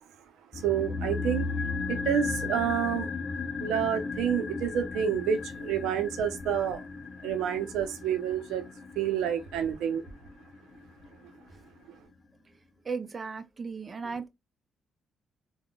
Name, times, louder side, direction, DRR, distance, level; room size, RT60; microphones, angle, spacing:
sound 1, 0.5-10.8 11.0-11.1, left 4 dB, 45° left, 0.3 m, -35 dB
voice 1, 0.5-1.5 1.9-3.1 3.6-6.9 7.2-8.6 9.0-10.0 11.9-12.0, right 9 dB, 90° right, 0.5 m, -29 dB
voice 2, 12.8-14.3, right 5 dB, 35° right, 0.5 m, -36 dB
3.5 x 2.1 x 2.3 m
cardioid pair, 90°, 0 cm